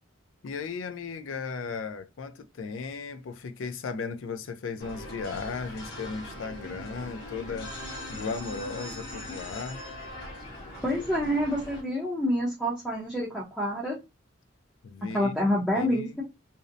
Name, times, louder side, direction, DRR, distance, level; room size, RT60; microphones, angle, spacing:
voice 1, 0.4-7.7 8.1-9.8 14.8-16.2, left 4 dB, 80° left, 0.4 m, -36 dB
sound 1, 4.8-11.8, left 1 dB, 55° left, 1.1 m, -40 dB
voice 2, 10.8-14.0 15.1-16.2, equal, ahead, 0.6 m, -27 dB
2.6 x 2.0 x 2.4 m
head